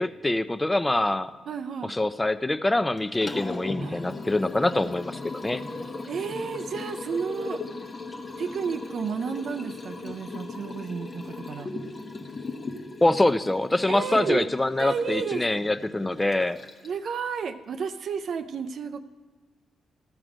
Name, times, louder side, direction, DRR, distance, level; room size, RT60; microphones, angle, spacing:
voice 1, 0.0-1.3 1.9-5.6 13.0-16.6, left 2 dB, 15° left, 13 dB, 0.5 m, -25 dB
voice 2, 1.5-1.9 3.8-4.1 6.1-7.6 8.4-11.7 13.9-14.5 14.8-15.5 16.8-19.0, right 6 dB, 65° right, 8 dB, 0.4 m, -32 dB
Liquid, 3.0-17.1, left 3 dB, 45° left, 1.0 m, -38 dB
13.5 x 6.0 x 5.0 m, 1.3 s
supercardioid pair, 60°, 0 cm